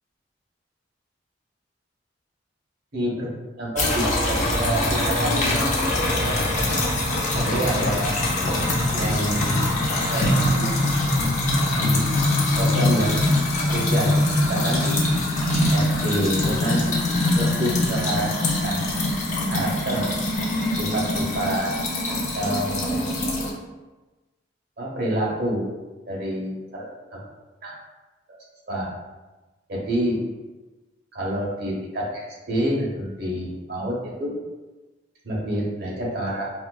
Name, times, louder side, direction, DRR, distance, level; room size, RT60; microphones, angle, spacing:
voice 1, 2.9-3.3 3.6-6.7 7.3-8.3 8.9-10.7 11.8-12.1 12.6-13.1 13.7-14.2 14.5-15.0 15.7-16.9 17.4-18.9 19.5-20.1 20.8-21.8 22.1-23.0 24.8-25.7 26.1-27.2 27.6-27.7 28.3-28.4 28.7-28.9 29.7-30.2 31.1-34.3 35.2-36.5, right 1 dB, 55° right, -4 dB, 0.9 m, -28 dB
sound 1, 3.8-23.5, left 1 dB, 40° left, 0.5 m, -23 dB
4.1 x 2.3 x 2.3 m, 1.2 s
head